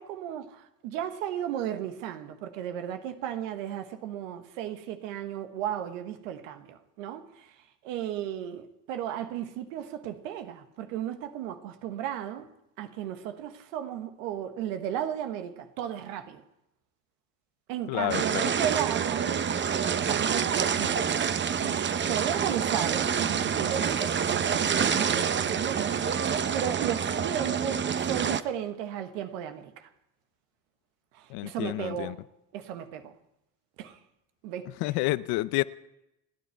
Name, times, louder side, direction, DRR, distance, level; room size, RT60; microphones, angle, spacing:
voice 1, 0.0-7.5 7.8-12.5 12.8-16.4 17.7-19.5 20.0-21.1 21.6-29.9 31.1-32.2 32.5-33.1 33.8-34.0 34.4-34.8, right 10 dB, 90° right, 1.4 m, -35 dB
voice 2, 17.9-18.5 31.3-32.2 34.8-35.6, left 19 dB, 75° left, 0.7 m, -29 dB
sound 1, 18.1-28.4, right 7 dB, 30° right, 0.8 m, -27 dB
29.0 x 9.9 x 4.6 m
supercardioid pair, 80°, 37 cm